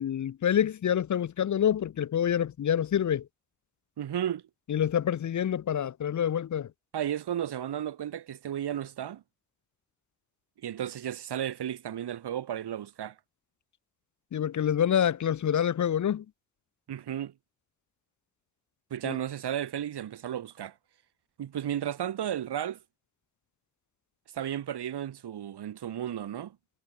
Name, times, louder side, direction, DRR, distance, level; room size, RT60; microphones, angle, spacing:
voice 1, 0.0-3.3 4.7-6.7 14.3-16.2 19.0-19.2, left 9 dB, 45° left, 0.7 m, -27 dB
voice 2, 4.0-4.4 6.9-9.2 10.6-13.2 16.9-17.3 18.9-20.7 21.4-22.8 24.3-26.6, right 10 dB, 75° right, 5.4 m, -33 dB
supercardioid pair, 40°, 40 cm